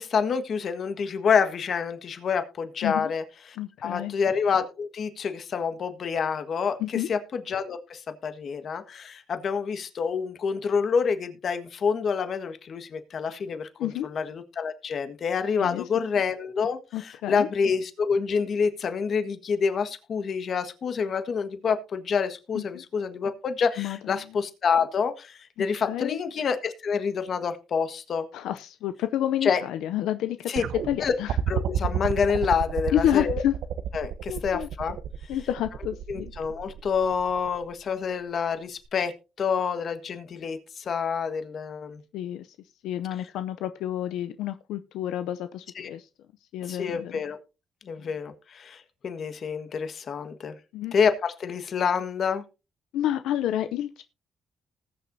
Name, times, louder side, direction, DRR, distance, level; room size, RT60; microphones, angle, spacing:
voice 1, 0.0-3.2 3.8-13.7 14.0-28.3 29.4-29.6 30.5-30.6 31.0-31.1 31.5-33.4 33.9-35.0 36.1-39.1 39.4-42.0 45.8-45.9 46.7-47.4 47.9-50.5 50.9-52.4, left 6 dB, 55° left, 9 dB, 1.5 m, -27 dB
voice 2, 3.6-4.1 6.8-7.1 13.8-14.1 15.6-15.8 16.9-17.5 22.5-22.8 23.8-24.4 25.6-26.2 28.3-31.3 32.9-33.6 34.3-34.7 35.3-36.3 42.1-42.5 42.8-46.1 46.5-47.2 48.0-48.2 50.7-50.9 52.9-54.0, left 12 dB, 90° left, 10 dB, 0.5 m, -29 dB
sound 1, 30.6-37.7 38.8-38.9, right 10 dB, 75° right, 0.8 m, -31 dB
19.5 x 6.9 x 2.7 m, 0.30 s
cardioid pair, 90°, 0 cm